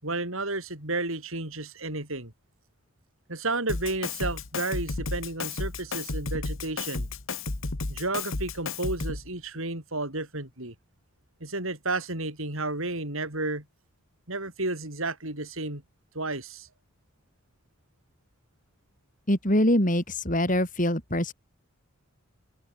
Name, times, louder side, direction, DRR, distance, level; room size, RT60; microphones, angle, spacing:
voice 1, 0.0-2.3 3.3-7.1 7.9-10.7 11.4-13.6 14.3-15.8 16.1-16.7, right 2 dB, 70° right, 6.6 m, -32 dB
Drum kit, 3.7-9.3, left 3 dB, 65° left, 1.6 m, -33 dB
voice 2, 19.3-21.3, left 1 dB, 35° left, 5.0 m, -24 dB
open air
head